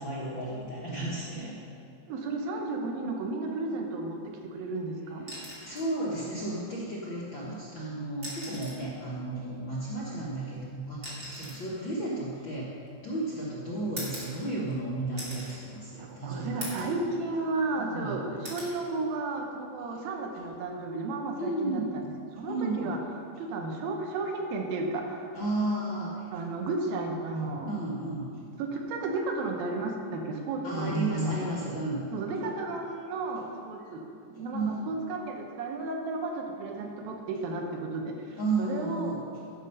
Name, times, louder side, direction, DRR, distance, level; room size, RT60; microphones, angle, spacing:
voice 1, 0.0-1.6 5.3-12.8 13.0-16.7 17.8-18.2 21.4-21.9 22.5-22.9 25.3-26.3 27.7-28.4 30.6-32.0 34.5-34.9 38.4-39.2, right 2 dB, 65° left, -7 dB, 1.2 m, -33 dB
voice 2, 2.1-5.3 16.0-21.7 22.3-23.0 23.3-25.3 26.3-27.7 28.6-31.4 32.1-39.2, right 3 dB, 85° right, 2 dB, 2.9 m, -33 dB
sound 1, 5.2-5.9 7.3-7.5 8.1-8.9 10.1-13.1 14.0-14.8 15.2-15.6 16.0-16.1 16.6-17.0 17.4-18.0 18.4-18.8 20.2-20.5, equal, 25° right, 2.2 m, -42 dB
13.0 x 5.6 x 5.5 m, 2.5 s
omnidirectional pair, 4.1 m